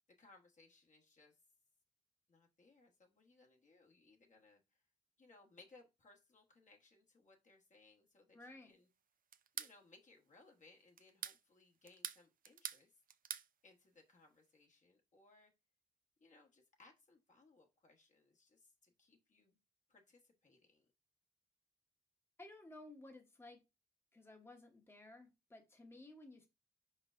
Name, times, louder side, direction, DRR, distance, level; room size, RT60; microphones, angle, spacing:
voice 1, 0.2-1.4 2.3-4.8 5.2-8.9 9.5-13.0 13.6-15.5 16.2-19.6 19.9-20.9, left 3 dB, 45° left, 1 dB, 1.1 m, -66 dB
voice 2, 8.3-8.7 22.4-23.6 24.1-26.5, left 2 dB, 15° left, 3 dB, 1.0 m, -56 dB
sound 1, 9.3-9.8 11.0-11.4 11.9-12.8 13.1-13.5, right 8 dB, 55° right, 0.4 m, -45 dB
4.7 x 4.3 x 2.5 m, 0.25 s
cardioid pair, 75°, 17 cm